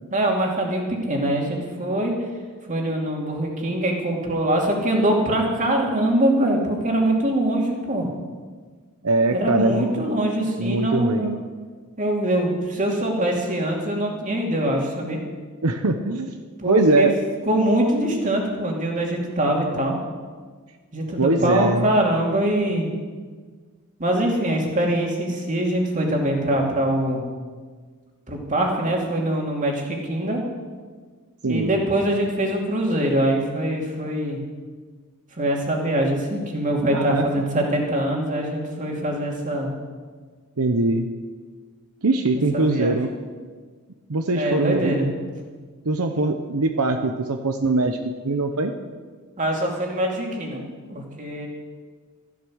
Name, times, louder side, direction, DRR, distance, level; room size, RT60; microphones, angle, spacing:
voice 1, 0.1-2.1 2.7-8.1 9.3-11.3 12.0-15.2 16.6-17.1 17.5-20.0 20.9-22.9 24.0-27.2 28.3-30.4 31.4-34.4 35.4-39.7 42.5-43.0 44.3-45.1 49.4-50.6 50.9-51.5, right 1 dB, 35° right, 0 dB, 2.7 m, -23 dB
voice 2, 9.0-10.0 10.6-11.4 15.6-16.3 16.6-17.2 21.2-21.9 31.4-31.7 36.9-37.3 40.6-41.1 42.0-43.1 44.1-44.9 45.8-48.0 48.2-48.7, right 2 dB, 80° right, 6 dB, 0.9 m, -22 dB
14.0 x 12.0 x 6.4 m, 1.5 s
head